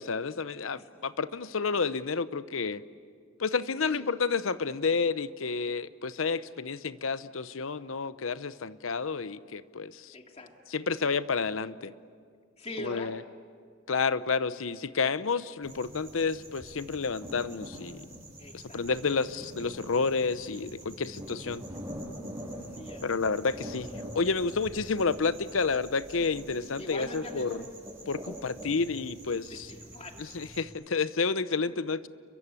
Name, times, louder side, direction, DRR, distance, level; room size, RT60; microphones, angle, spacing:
voice 1, 0.0-2.8 3.4-10.1 10.7-11.9 12.8-13.2 13.9-18.1 18.5-21.6 23.0-27.6 28.1-29.7 30.3-32.1, left 4 dB, 80° left, 15 dB, 0.8 m, -30 dB
voice 2, 10.1-10.5 12.6-13.2 18.4-18.8 22.5-23.1 26.8-27.6 29.5-30.2 31.5-31.8, left 1 dB, 30° left, 3 dB, 2.4 m, -42 dB
sound 1, 15.6-30.6, equal, 15° right, 7.9 m, -44 dB
30.0 x 23.0 x 8.4 m, 2.1 s
head